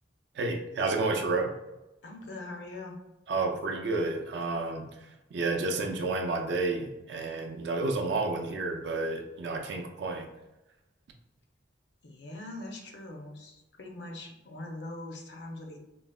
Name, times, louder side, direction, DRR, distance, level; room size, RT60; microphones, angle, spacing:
voice 1, 0.4-1.5 3.3-4.9 5.3-10.3, right 3 dB, 65° right, 3 dB, 0.4 m, -30 dB
voice 2, 2.0-3.0 12.0-15.8, left 2 dB, 65° left, 2 dB, 0.6 m, -42 dB
3.7 x 2.0 x 2.3 m, 0.98 s
head